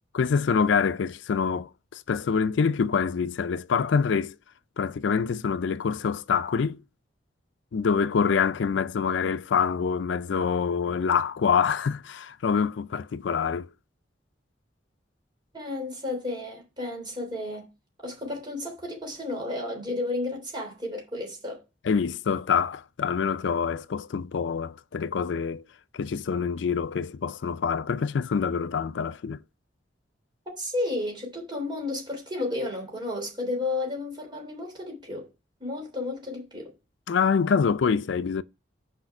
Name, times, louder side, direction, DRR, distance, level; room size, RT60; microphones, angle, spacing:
voice 1, 0.1-4.4 4.8-6.8 7.7-13.7 21.8-25.6 25.9-29.4 37.1-38.4, left 6 dB, 90° left, 0.4 m, -26 dB
voice 2, 15.5-17.7 18.0-21.6 30.6-35.3 35.6-36.7, left 2 dB, 25° right, 3.3 m, -32 dB
6.5 x 5.0 x 5.8 m
head